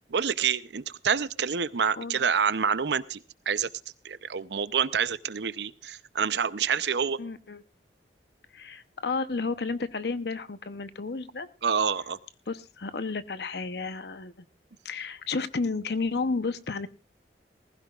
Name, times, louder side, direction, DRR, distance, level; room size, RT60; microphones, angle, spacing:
voice 1, 0.1-3.2 3.5-3.7 4.0-7.2 11.6-12.2, right 6 dB, 75° right, 15 dB, 0.6 m, -27 dB
voice 2, 7.2-7.6 8.5-11.5 12.5-14.3 14.8-16.9, left 4 dB, 65° left, 12 dB, 0.8 m, -32 dB
19.5 x 15.5 x 2.4 m, 0.31 s
head